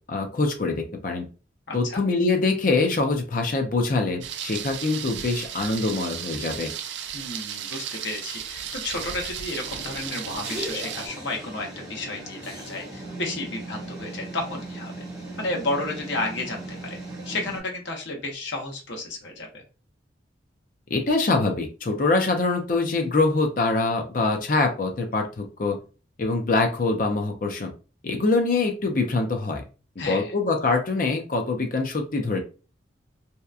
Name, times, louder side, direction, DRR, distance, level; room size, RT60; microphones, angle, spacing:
voice 1, 0.1-1.2 1.7-6.7 20.9-25.8 26.2-27.7 28.0-29.6 30.1-32.4, left 3 dB, 45° left, 5 dB, 0.5 m, -24 dB
voice 2, 1.7-2.0 7.1-14.9 15.4-17.0 17.2-19.6 30.0-30.3, left 2 dB, 70° left, 1 dB, 0.8 m, -32 dB
Thunder, 4.2-11.1, right 9 dB, 65° right, 0.3 m, -35 dB
sound 1, 9.6-17.6, right 2 dB, 20° right, 0.7 m, -38 dB
2.8 x 2.2 x 2.3 m, 0.34 s
head